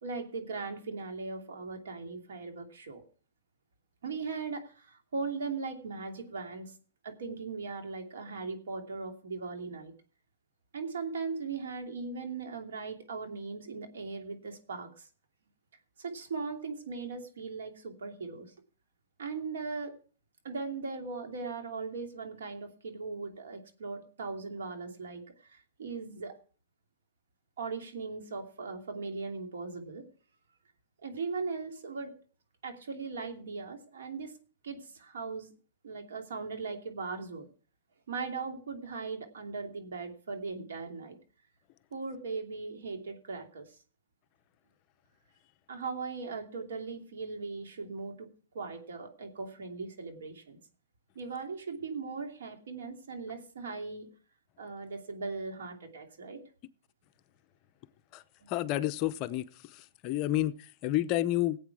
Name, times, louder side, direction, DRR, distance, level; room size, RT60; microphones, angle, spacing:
voice 1, 0.0-3.0 4.0-6.7 7.0-9.9 10.7-15.1 16.0-18.5 19.2-20.0 20.4-26.4 27.6-30.1 31.0-32.1 32.6-34.4 34.6-35.5 35.8-37.5 38.1-41.2 41.9-43.7 45.7-48.3 48.5-50.6 51.1-54.1 54.6-56.4 58.4-58.5, right 4 dB, 85° right, 2.7 m, -39 dB
voice 2, 58.5-61.6, left 14 dB, 35° left, 0.7 m, -30 dB
17.5 x 8.4 x 4.7 m
hypercardioid pair, 155°, 0 cm